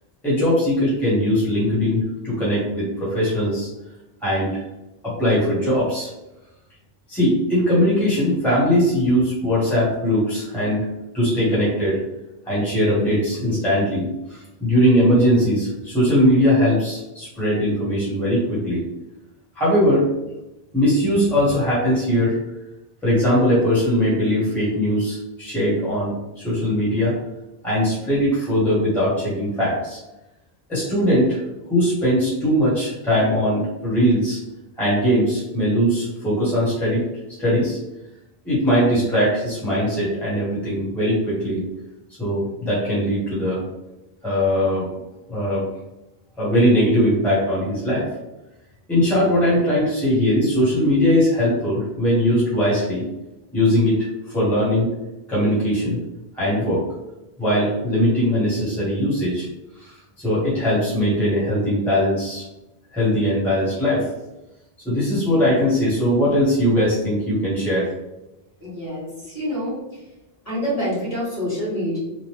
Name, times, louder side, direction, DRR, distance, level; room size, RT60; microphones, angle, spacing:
voice 1, 0.2-3.7 4.2-4.6 5.0-6.1 7.1-10.8 11.1-12.0 12.4-18.8 19.5-20.1 20.7-22.3 23.0-27.1 27.6-30.0 30.7-31.4 31.7-34.4 34.8-37.0 37.4-37.8 38.4-41.6 42.2-43.6 44.2-44.9 45.3-45.7 46.4-48.1 48.9-53.0 53.5-54.0 54.3-54.9 55.3-56.0 56.3-56.8 57.4-59.5 59.8-62.4 62.9-64.1 64.8-67.9, equal, ahead, -8 dB, 1.0 m, -20 dB
voice 2, 68.6-70.0 70.4-72.0, equal, 35° left, -8 dB, 1.6 m, -27 dB
2.9 x 2.0 x 3.2 m, 0.98 s
omnidirectional pair, 1.0 m